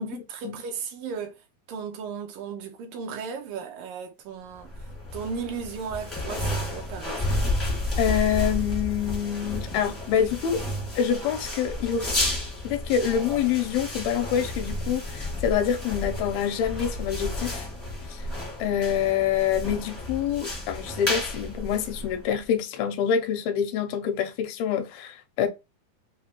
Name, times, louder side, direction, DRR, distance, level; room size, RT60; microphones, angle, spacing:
voice 1, 0.0-1.4 1.7-4.7 5.1-7.5 10.2-10.3, right 6 dB, 75° right, 2.3 m, -35 dB
sound 1, 4.6-22.4, left 1 dB, 20° left, 0.4 m, -32 dB
voice 2, 8.0-10.6 11.0-12.2 12.6-17.7 18.1-18.3 18.6-25.5, left 8 dB, 90° left, 2.6 m, -26 dB
6.7 x 2.5 x 3.0 m
omnidirectional pair, 4.3 m